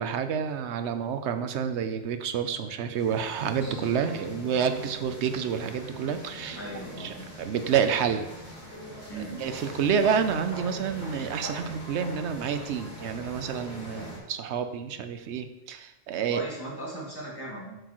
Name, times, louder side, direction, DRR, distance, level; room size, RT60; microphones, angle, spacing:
voice 1, 0.0-6.6 7.0-8.3 9.4-16.4, right 7 dB, 80° right, 9 dB, 0.9 m, -29 dB
sound 1, 2.9-14.2, equal, 45° left, 2.0 m, -42 dB
voice 2, 6.6-7.3 9.1-9.4 16.3-17.8, right 1 dB, 20° left, -5 dB, 2.2 m, -38 dB
7.8 x 6.6 x 3.0 m, 0.98 s
omnidirectional pair, 1.1 m